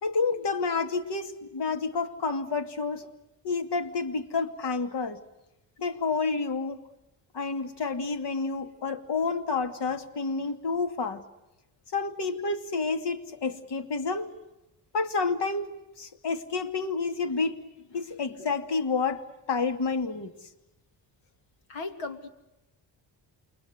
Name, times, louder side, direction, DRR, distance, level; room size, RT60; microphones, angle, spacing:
voice 1, 0.0-3.1 3.4-5.2 5.8-6.9 7.3-11.2 11.9-14.3 14.9-17.5 17.9-19.2 19.5-20.3, left 4 dB, 55° left, 7 dB, 2.5 m, -29 dB
voice 2, 21.7-22.3, left 3 dB, 70° left, 6 dB, 2.9 m, -36 dB
29.0 x 23.0 x 8.0 m, 0.94 s
hypercardioid pair, 45°, 50 cm